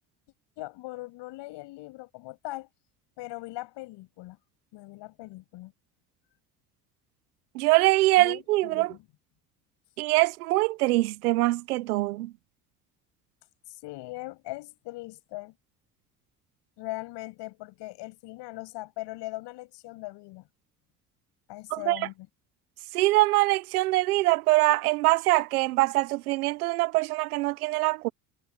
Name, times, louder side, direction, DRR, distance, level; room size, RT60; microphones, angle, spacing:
voice 1, 0.6-2.7 3.2-4.4 4.7-5.7 8.2-9.0 13.7-15.5 16.8-20.4 21.5-22.3, left 19 dB, 70° left, 7.0 m, -40 dB
voice 2, 7.5-8.9 10.0-12.3 21.7-22.1 22.9-28.1, right 19 dB, 90° right, 1.0 m, -23 dB
hypercardioid pair, 65°, 43 cm